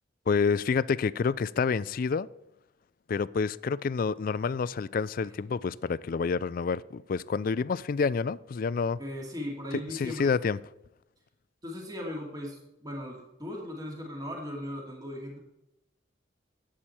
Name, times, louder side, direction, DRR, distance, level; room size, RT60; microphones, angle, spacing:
voice 1, 0.3-2.3 3.1-9.0 9.9-10.6, left 5 dB, 50° left, 0.3 m, -28 dB
voice 2, 9.0-10.3 11.6-15.4, left 1 dB, 20° right, 2.5 m, -38 dB
12.0 x 8.8 x 4.4 m
head